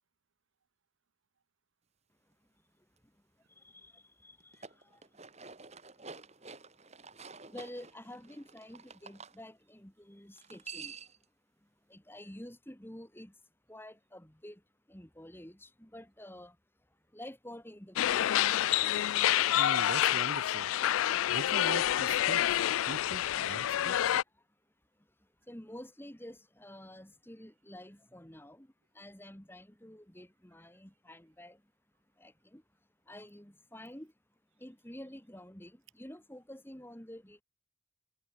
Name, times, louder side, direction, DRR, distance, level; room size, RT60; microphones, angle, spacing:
voice 1, 3.6-4.6 7.5-10.9 11.9-13.3 13.7-14.6 14.9-16.5 17.1-18.3 25.5-28.7 29.0-31.6 32.2-32.6 33.1-34.1 34.6-37.4, left 1 dB, 10° left, 2.2 m, -49 dB
sound 1, 4.4-9.4 10.4-11.2, right 5 dB, 30° right, 3.1 m, -49 dB
sound 2, 18.0-24.2, left 12 dB, 75° left, 0.3 m, -28 dB
voice 2, 19.5-20.7 21.3-24.2, right 4 dB, 65° right, 0.6 m, -42 dB
head